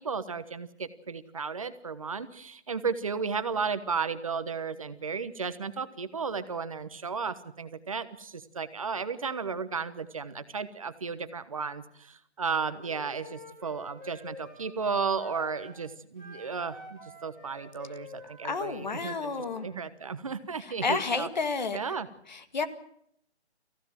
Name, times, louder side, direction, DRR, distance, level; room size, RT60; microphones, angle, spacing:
voice 1, 0.0-21.3 21.7-22.1, right 5 dB, 30° right, 13 dB, 1.1 m, -34 dB
Wind instrument woodwind instrument, 12.8-15.8 16.2-19.6, left 2 dB, 10° left, 3.9 m, -48 dB
voice 2, 18.4-19.7 20.6-21.8 22.3-22.7, left 4 dB, 40° left, 10 dB, 2.0 m, -31 dB
25.5 x 16.0 x 7.6 m, 0.70 s
hypercardioid pair, 170°, 33 cm